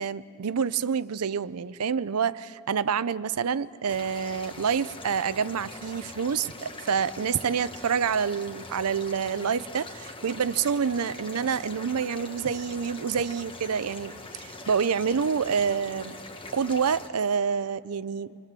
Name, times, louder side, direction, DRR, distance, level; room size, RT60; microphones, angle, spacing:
voice 1, 0.0-14.1 14.4-16.2 16.5-18.4, right 6 dB, 85° right, 16 dB, 0.6 m, -27 dB
sound 1, 3.9-17.1, left 2 dB, 25° left, 1.3 m, -43 dB
25.5 x 24.0 x 7.5 m, 2.4 s
head